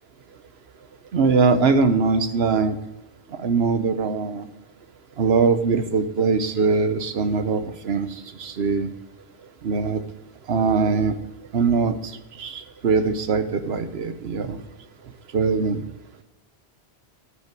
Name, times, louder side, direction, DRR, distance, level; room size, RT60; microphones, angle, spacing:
voice 1, 1.1-2.7 3.4-4.5 5.2-8.1 8.4-8.9 9.6-10.0 10.5-11.1 11.5-11.9 12.4-14.6 15.3-15.8, right 4 dB, 75° right, 9 dB, 1.1 m, -21 dB
13.5 x 5.2 x 4.6 m, 0.99 s
omnidirectional pair, 1.1 m